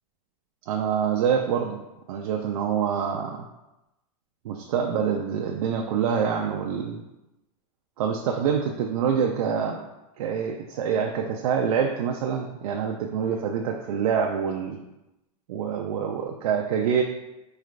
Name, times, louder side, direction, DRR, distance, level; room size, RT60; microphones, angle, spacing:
voice 1, 0.7-1.8 2.1-3.4 4.4-7.0 8.0-9.8 10.2-14.8 15.5-17.0, right 7 dB, 85° right, 2 dB, 0.4 m, -26 dB
4.5 x 3.2 x 2.5 m, 0.97 s
supercardioid pair, 165°, 18 cm